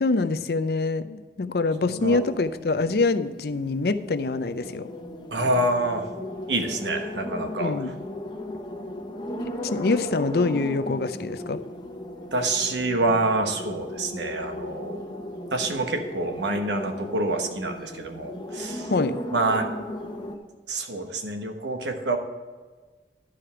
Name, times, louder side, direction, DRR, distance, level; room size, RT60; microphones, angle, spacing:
voice 1, 0.0-4.9 7.6-8.1 9.6-11.6 18.9-19.2, left 3 dB, 60° left, 11 dB, 0.5 m, -25 dB
sound 1, 2.1-20.4, equal, 25° left, 0.9 m, -36 dB
voice 2, 5.3-6.1 6.5-7.7 12.3-15.0 15.5-18.9 19.3-19.7 20.7-22.2, right 2 dB, 85° right, 5 dB, 1.2 m, -27 dB
12.0 x 5.0 x 5.7 m, 1.4 s
head